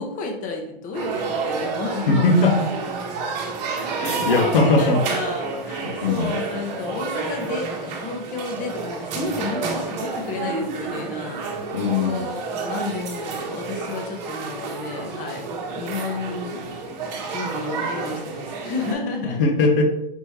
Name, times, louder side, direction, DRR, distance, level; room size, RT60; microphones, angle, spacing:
voice 1, 0.0-2.3 3.7-4.5 4.8-15.5 15.7-16.9 17.2-19.4, left 3 dB, 25° left, 2 dB, 0.9 m, -31 dB
sound 1, 0.9-18.9, right 4 dB, 45° right, 1.1 m, -30 dB
voice 2, 2.1-2.7 4.0-5.0 5.7-6.3 11.7-12.2 19.2-19.8, left 3 dB, 65° left, 4 dB, 0.9 m, -20 dB
5.3 x 3.0 x 3.2 m, 0.84 s
hypercardioid pair, 115°, 29 cm